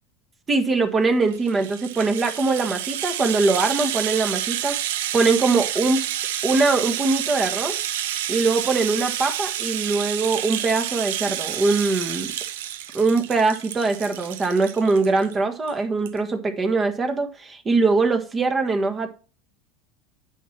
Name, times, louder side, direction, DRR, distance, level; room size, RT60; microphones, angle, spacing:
voice 1, 0.5-4.8 5.1-6.0 6.4-7.8 8.3-12.3 12.9-19.1, right 3 dB, 25° right, 7 dB, 1.6 m, -22 dB
Rattle (instrument), 1.2-15.3 15.7-15.8 16.0-16.2, right 11 dB, 65° right, 0.7 m, -29 dB
9.2 x 5.9 x 4.4 m, 0.36 s
figure-of-eight pair, 80°, 0 cm